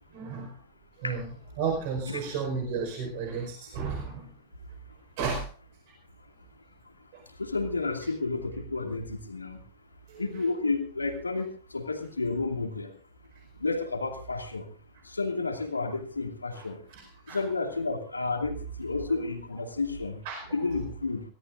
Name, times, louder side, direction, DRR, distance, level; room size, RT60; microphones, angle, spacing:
voice 1, 0.1-0.5 1.0-1.3 1.6-4.3 5.2-5.5 10.1-10.2 16.5-16.6 16.9-17.4 20.2-20.6, right 5 dB, 50° right, 3 dB, 4.9 m, -33 dB
voice 2, 7.4-9.6 10.2-11.5 11.7-12.9 13.6-14.6 15.1-16.8 17.3-20.2 20.5-21.2, left 3 dB, 80° left, 4 dB, 2.5 m, -31 dB
24.0 x 17.5 x 2.6 m, 0.39 s
figure-of-eight pair, 90°, 0 cm